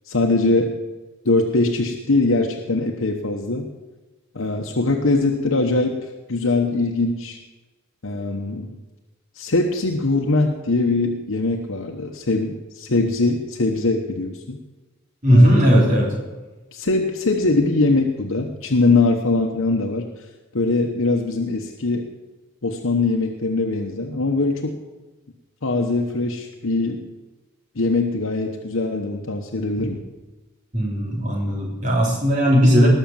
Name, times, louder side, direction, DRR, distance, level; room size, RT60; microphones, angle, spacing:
voice 1, 0.1-0.8 1.2-3.7 4.3-7.4 8.0-8.8 9.3-14.6 15.3-16.1 16.7-20.3 20.5-22.1 22.6-24.8 25.6-27.0 27.7-30.0, left 3 dB, 80° left, 2 dB, 1.0 m, -22 dB
voice 2, 15.2-16.1 30.7-32.9, equal, 35° right, -3 dB, 3.7 m, -16 dB
19.5 x 6.5 x 7.3 m, 1.2 s
head